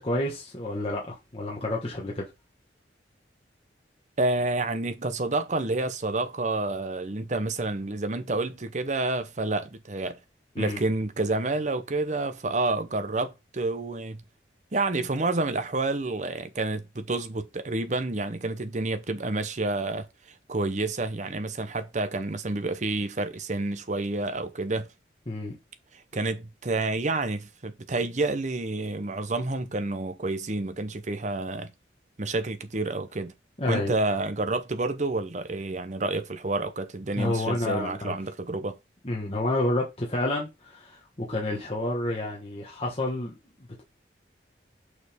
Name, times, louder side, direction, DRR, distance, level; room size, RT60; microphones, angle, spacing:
voice 1, 0.0-2.3 10.5-10.8 25.3-25.6 33.6-33.9 37.2-38.2 39.0-43.3, left 1 dB, 30° left, 1.3 m, -29 dB
voice 2, 4.2-10.2 10.6-14.2 14.7-20.1 20.5-24.9 25.9-31.7 32.2-33.3 33.7-38.8, right 2 dB, 40° right, 0.8 m, -29 dB
6.4 x 4.9 x 3.5 m
head